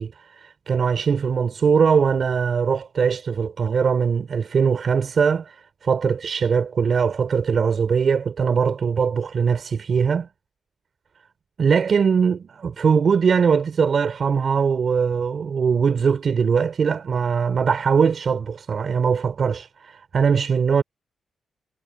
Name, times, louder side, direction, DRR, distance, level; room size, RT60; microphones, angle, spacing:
voice 1, 0.0-5.5 5.8-10.3 11.6-20.8, right 6 dB, 55° right, 4.4 m, -21 dB
cardioid pair, 95°, 0 cm